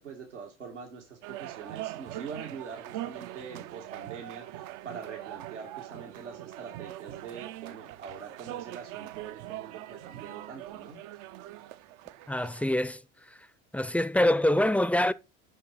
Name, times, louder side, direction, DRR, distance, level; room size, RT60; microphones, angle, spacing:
voice 1, 0.0-11.0, right 6 dB, 90° right, 2.0 m, -44 dB
sound 1, 1.2-12.7, right 15 dB, 55° right, 0.6 m, -42 dB
voice 2, 12.3-13.0 13.3-13.5 13.7-15.1, left 1 dB, 5° left, 0.5 m, -25 dB
7.8 x 6.0 x 4.7 m
hypercardioid pair, 75°, 35 cm